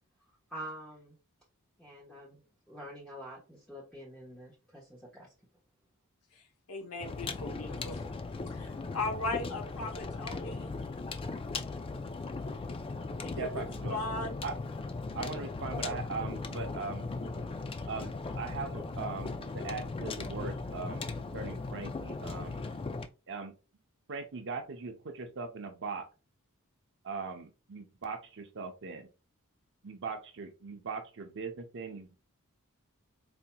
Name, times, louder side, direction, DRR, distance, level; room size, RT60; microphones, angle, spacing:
voice 1, 0.5-1.2 1.8-2.4 2.7-5.3, right 1 dB, 5° left, -7 dB, 1.1 m, -46 dB
voice 2, 6.3-8.0 8.5-10.7 13.2-13.6 13.9-14.4, left 2 dB, 80° left, 4 dB, 0.8 m, -38 dB
sound 1, 7.0-23.1, left 3 dB, 25° left, 0.3 m, -38 dB
voice 3, 13.4-14.0 14.4-14.6 15.1-17.1 17.9-21.1 21.3-22.6 23.3-23.5 24.1-26.1 27.0-29.1 29.8-32.2, right 4 dB, 55° right, 6 dB, 0.7 m, -40 dB
4.2 x 2.8 x 2.2 m, 0.31 s
head